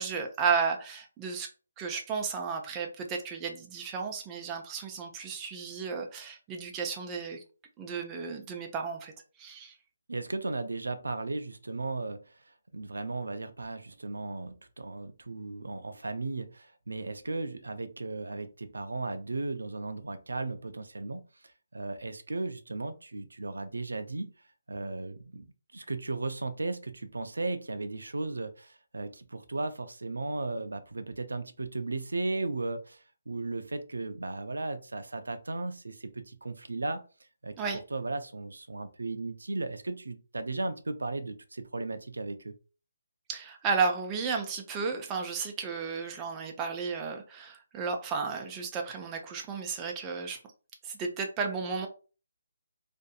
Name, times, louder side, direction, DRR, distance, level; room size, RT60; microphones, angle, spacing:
voice 1, 0.0-1.5 1.8-7.4 7.8-9.1 9.4-9.7 37.6-37.8 43.3-50.4 50.8-51.9, right 5 dB, 20° right, 0.4 m, -33 dB
voice 2, 10.1-24.3 24.7-25.5 25.7-37.0 37.4-37.6 37.9-42.6, right 3 dB, 85° right, 0.4 m, -36 dB
2.5 x 2.5 x 2.3 m
figure-of-eight pair, 150°, 0 cm